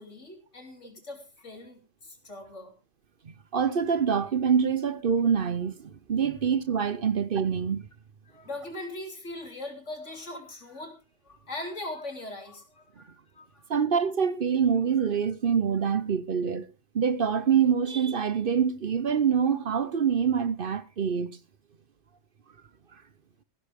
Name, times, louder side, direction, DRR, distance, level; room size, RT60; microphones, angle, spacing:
voice 1, 0.0-2.7 8.3-10.9 11.2-13.8 15.0-15.1, left 2 dB, 75° left, 3.5 m, -40 dB
voice 2, 3.2-7.8 13.7-21.4, right 7 dB, 50° right, 0.9 m, -25 dB
15.5 x 13.0 x 3.6 m
omnidirectional pair, 1.2 m